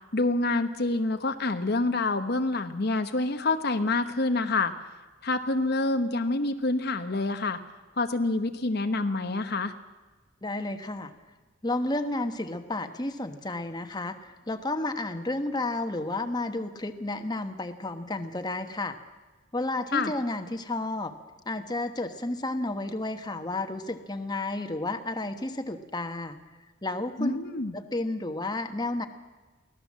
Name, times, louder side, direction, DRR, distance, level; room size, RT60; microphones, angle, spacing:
voice 1, 0.1-4.7 5.2-7.6 8.0-9.7 19.9-20.1 27.2-27.7, left 2 dB, 55° left, 8 dB, 1.0 m, -27 dB
voice 2, 10.4-11.1 11.6-19.0 19.5-21.1 21.5-26.4 26.8-27.4 27.7-29.1, left 2 dB, 20° left, 7 dB, 1.2 m, -31 dB
24.0 x 17.0 x 7.5 m, 1.3 s
head